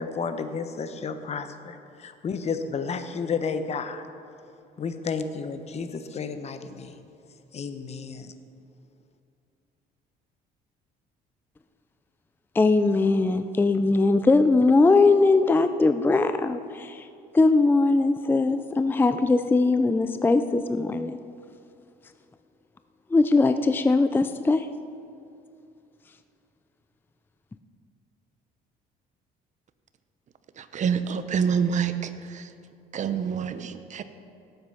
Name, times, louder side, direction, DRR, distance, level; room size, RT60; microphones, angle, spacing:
voice 1, 0.0-4.0 4.8-6.9 7.5-8.3, left 5 dB, 40° left, 9 dB, 1.0 m, -32 dB
voice 2, 12.5-17.1 17.3-21.2 23.1-24.7, left 3 dB, 10° left, 10 dB, 0.4 m, -20 dB
voice 3, 30.5-32.5 32.9-34.0, right 7 dB, 45° right, 10 dB, 0.9 m, -27 dB
18.0 x 8.1 x 5.6 m, 2.6 s
cardioid pair, 110°, 17 cm